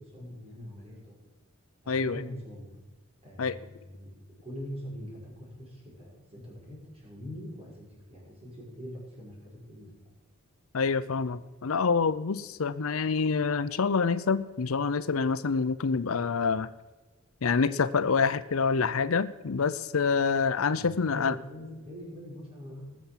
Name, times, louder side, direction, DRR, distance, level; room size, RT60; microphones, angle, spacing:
voice 1, 0.1-1.1 1.8-2.7 3.2-4.1 4.4-9.9 20.7-23.0, equal, 30° right, -5 dB, 6.0 m, -43 dB
voice 2, 1.9-2.2 3.4-3.6 10.7-16.7 17.4-21.4, left 5 dB, 75° left, 15 dB, 0.6 m, -27 dB
19.0 x 7.2 x 7.3 m, 1.2 s
head